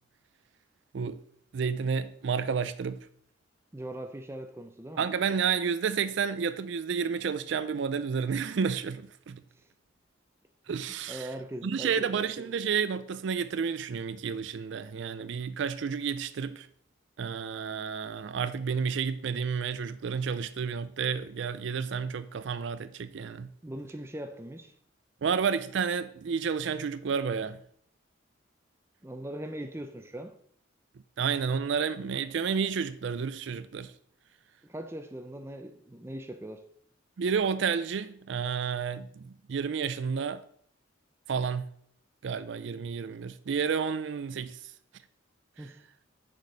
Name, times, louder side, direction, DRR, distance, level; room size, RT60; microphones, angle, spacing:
voice 1, 1.5-3.1 5.0-9.4 10.7-11.3 11.6-16.7 17.2-23.5 25.2-27.6 31.2-33.9 37.2-40.4 41.3-41.6 42.2-44.7, right 6 dB, 65° right, 0.4 m, -31 dB
voice 2, 3.7-5.1 10.9-12.5 23.6-24.7 29.0-30.4 34.6-36.6 45.6-45.8, right 1 dB, 15° right, 0.6 m, -40 dB
6.5 x 5.1 x 5.5 m
head